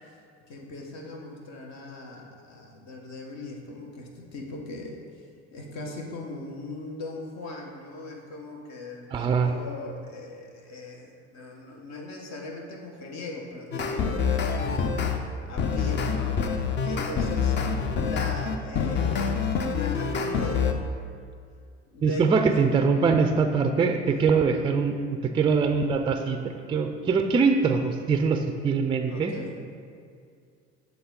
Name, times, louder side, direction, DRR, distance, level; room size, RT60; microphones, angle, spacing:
voice 1, 0.5-15.2 15.4-17.6 18.0-20.8 21.9-22.3 24.1-24.3 29.0-29.5, left 2 dB, 55° left, 1 dB, 1.2 m, -40 dB
voice 2, 9.1-9.5 22.0-25.0 25.2-29.3, right 5 dB, 15° right, 6 dB, 0.3 m, -23 dB
sound 1, 13.7-15.2 15.6-20.7, left 6 dB, 35° left, 0.6 m, -26 dB
7.0 x 3.6 x 3.8 m, 2.2 s
hypercardioid pair, 60°, 34 cm